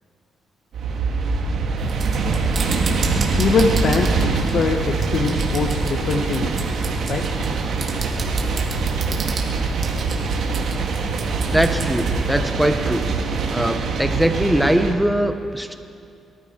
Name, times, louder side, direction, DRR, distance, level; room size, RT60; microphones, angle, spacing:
sound 1, 0.7-14.9, right 4 dB, 70° right, 1.8 m, -24 dB
sound 2, 1.8-12.2, right 3 dB, 50° right, 2.2 m, -29 dB
voice 1, 3.4-6.5 7.1-7.3, left 4 dB, 55° left, 4 dB, 1.1 m, -22 dB
voice 2, 11.5-13.1 13.5-15.8, right 1 dB, ahead, 7 dB, 0.9 m, -21 dB
23.5 x 13.5 x 4.4 m, 2.5 s
cardioid pair, 120°, 0 cm